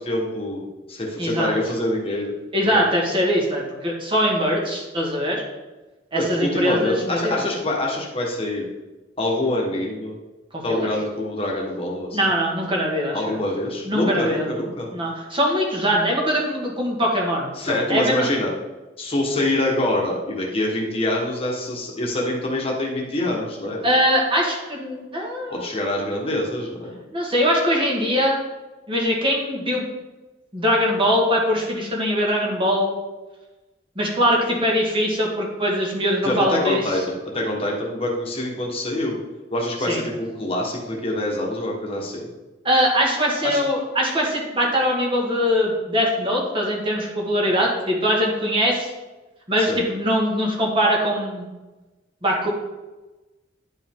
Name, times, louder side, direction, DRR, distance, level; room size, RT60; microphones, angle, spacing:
voice 1, 0.0-2.3 2.6-2.8 6.1-8.7 9.2-10.1 10.6-12.2 13.1-14.9 17.5-18.5 19.0-23.8 25.5-27.0 36.2-39.2 39.5-42.3 43.4-43.6 49.6-49.8, left 1 dB, 35° left, -2 dB, 1.4 m, -25 dB
voice 2, 1.2-1.6 2.5-5.4 6.1-7.4 10.5-10.9 12.1-13.4 13.9-14.4 14.9-18.3 23.8-25.6 27.1-28.4 28.9-29.8 30.5-32.9 33.9-36.8 39.9-40.0 42.6-48.9 49.5-51.5 52.2-52.5, equal, 30° right, -2 dB, 1.8 m, -22 dB
10.5 x 5.3 x 3.7 m, 1.1 s
head